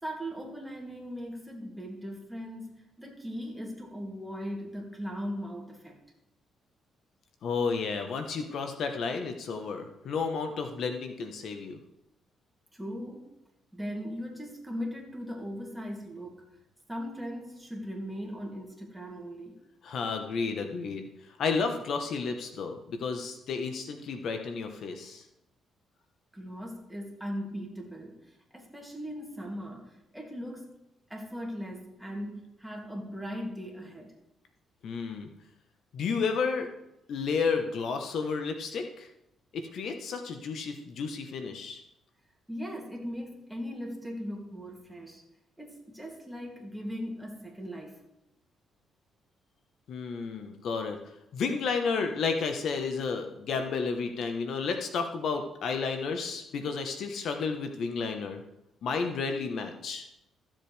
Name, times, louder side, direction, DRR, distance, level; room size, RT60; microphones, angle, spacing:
voice 1, 0.0-6.0 12.7-13.3 13.7-16.4 16.9-19.6 26.3-30.7 31.1-34.1 42.5-45.2 45.6-48.0, equal, 5° right, -1 dB, 2.7 m, -39 dB
voice 2, 7.4-11.8 19.8-21.1 21.4-25.2 34.8-35.3 35.9-36.7 37.1-39.1 39.5-41.8 49.9-51.0 51.3-58.4 58.8-60.1, left 5 dB, 65° left, 5 dB, 1.1 m, -32 dB
15.0 x 7.5 x 3.4 m, 0.84 s
cardioid pair, 90°, 0 cm